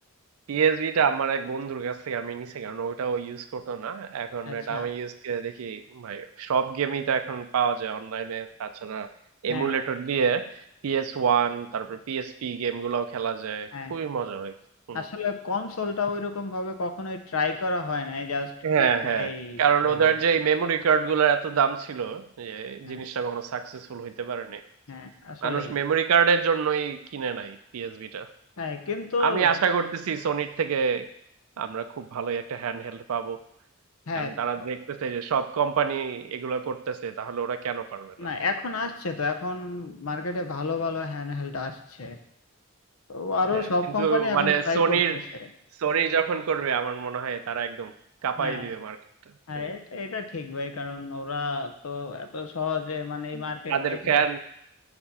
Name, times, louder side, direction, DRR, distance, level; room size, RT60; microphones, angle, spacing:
voice 1, 0.5-9.1 9.4-14.5 14.9-15.1 18.6-24.6 25.4-28.3 29.2-31.1 31.6-33.4 34.1-38.1 43.5-43.7 44.0-45.2 45.8-47.9 48.2-49.0 49.6-49.7 53.3-53.4 53.7-54.4, right 6 dB, 90° right, 9 dB, 0.4 m, -27 dB
voice 2, 4.5-4.9 9.5-9.8 13.7-14.0 14.9-18.5 18.8-18.9 19.2-20.1 22.8-23.1 24.9-25.7 28.6-29.5 34.1-34.7 38.2-42.2 43.1-45.0 48.4-48.7 49.5-54.4, left 3 dB, 90° left, 7 dB, 0.8 m, -31 dB
6.7 x 4.4 x 5.6 m, 0.73 s
head